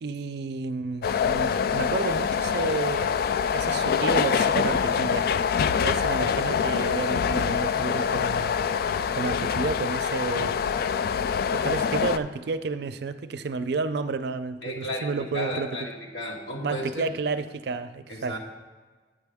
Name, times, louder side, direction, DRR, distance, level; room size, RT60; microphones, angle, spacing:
voice 1, 0.0-3.1 3.5-5.3 5.8-8.6 9.1-10.6 11.5-15.7 16.6-18.3, right 4 dB, 65° right, 11 dB, 0.4 m, -31 dB
sound 1, 1.0-12.2, left 7 dB, 60° left, 0.3 m, -25 dB
voice 2, 14.6-15.1 15.3-17.1 18.1-18.4, equal, 75° left, -2 dB, 2.0 m, -33 dB
9.9 x 8.7 x 3.5 m, 1.4 s
head